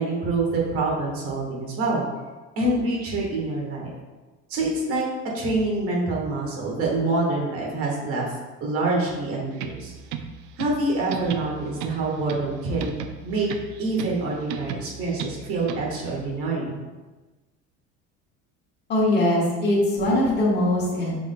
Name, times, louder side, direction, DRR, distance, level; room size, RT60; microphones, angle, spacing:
voice 1, 0.0-2.0 2.6-3.9 4.5-5.0 5.3-8.3 8.6-9.9 10.6-12.9 13.2-13.5 13.8-16.8, right 2 dB, 50° right, -3 dB, 1.4 m, -26 dB
sound 1, 9.5-16.1, right 7 dB, 70° right, 0.5 m, -37 dB
voice 2, 18.9-21.2, left 1 dB, 35° left, -6 dB, 1.4 m, -21 dB
6.0 x 3.8 x 2.2 m, 1.2 s
cardioid pair, 155°, 30 cm